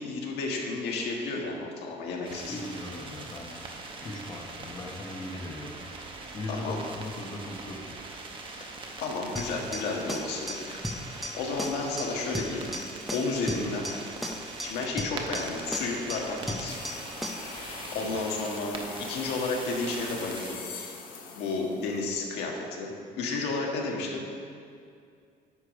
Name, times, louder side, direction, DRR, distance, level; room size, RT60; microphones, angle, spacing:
voice 1, 0.0-2.6 6.5-6.8 8.5-8.6 9.0-10.8 11.4-12.7 13.1-13.9 14.5-16.8 17.6-20.6 21.3-24.2, left 3 dB, 85° left, -1 dB, 1.6 m, -32 dB
sound 1, 2.2-20.5, right 3 dB, 30° right, 0.9 m, -42 dB
voice 2, 2.5-3.5 4.0-5.8 6.1-8.0 18.0-18.2, left 2 dB, 25° left, -1 dB, 0.9 m, -39 dB
sound 2, 9.4-17.6, equal, ahead, 0.5 m, -37 dB
sound 3, 16.7-22.4, left 4 dB, 60° left, 1.3 m, -42 dB
9.8 x 4.9 x 6.0 m, 2.4 s
cardioid pair, 175°, 17 cm